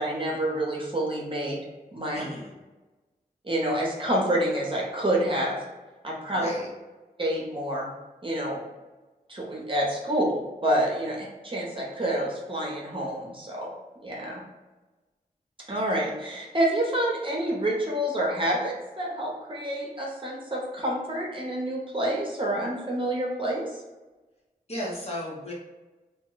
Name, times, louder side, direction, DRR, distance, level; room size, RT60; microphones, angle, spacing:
voice 1, 0.0-1.6 1.9-2.2 3.4-5.6 6.0-6.5 7.2-7.9 8.2-8.6 9.3-13.7 14.0-14.4 15.7-23.8, right 1 dB, 35° right, -3 dB, 0.8 m, -28 dB
voice 2, 2.1-2.5 6.3-6.7 24.7-25.5, left 1 dB, 40° left, -3 dB, 0.9 m, -35 dB
2.8 x 2.2 x 3.8 m, 1.2 s
wide cardioid pair, 85°, 16 cm